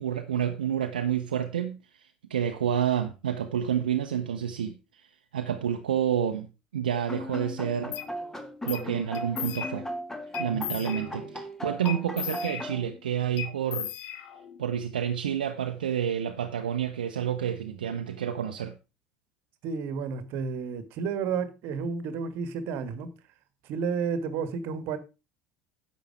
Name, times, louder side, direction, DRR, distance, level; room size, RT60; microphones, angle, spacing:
voice 1, 0.0-1.8 2.3-5.1 5.3-6.5 6.7-8.0 8.6-9.9 10.4-13.9 14.6-18.7, right 9 dB, 70° right, 0.8 m, -29 dB
sound 1, 7.1-12.8, equal, 10° left, 1.9 m, -37 dB
sound 2, 7.9-8.1 8.7-8.9 9.1-10.0 10.3-11.3 11.8-13.0 13.4-14.6, left 10 dB, 50° left, 1.2 m, -37 dB
voice 2, 10.4-11.4 19.6-23.1 23.6-25.0, right 5 dB, 50° right, 1.5 m, -32 dB
10.5 x 7.3 x 4.8 m
figure-of-eight pair, 65°, 5 cm